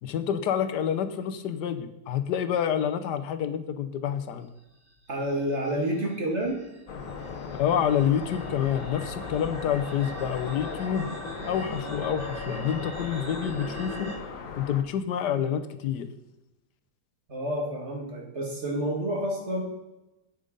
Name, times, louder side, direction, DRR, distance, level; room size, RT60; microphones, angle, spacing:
voice 1, 0.0-4.5 7.6-11.1 11.5-14.1 14.5-16.1, left 9 dB, 80° left, 10 dB, 1.4 m, -28 dB
sound 1, 4.9-14.1, right 1 dB, 85° right, 4.0 m, -42 dB
voice 2, 5.1-6.6 17.3-19.6, right 1 dB, 40° right, 0 dB, 2.3 m, -29 dB
sound 2, 6.9-14.8, left 5 dB, 55° left, 1.3 m, -38 dB
8.6 x 7.5 x 5.2 m, 0.98 s
omnidirectional pair, 1.8 m